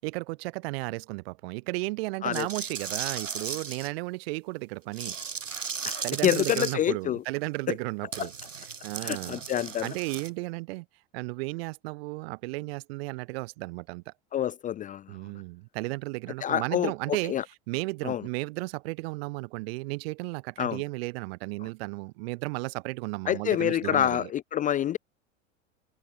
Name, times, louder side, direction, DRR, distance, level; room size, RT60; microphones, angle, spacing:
voice 1, 0.0-5.2 6.0-8.3 8.6-9.5 9.8-10.9 11.1-14.1 15.1-24.3, right 24 dB, 50° right, 5.5 m, -34 dB
sound 1, 2.3-3.9 4.9-6.7 8.1-10.3, right 6 dB, 75° right, 7.6 m, -36 dB
voice 2, 5.8-7.2 8.2-8.3 9.0-9.9 14.3-15.0 16.4-16.9 17.3-17.4 18.0-18.2 20.6-20.8 23.3-25.0, left 10 dB, 20° left, 0.7 m, -27 dB
figure-of-eight pair, 85°, 38 cm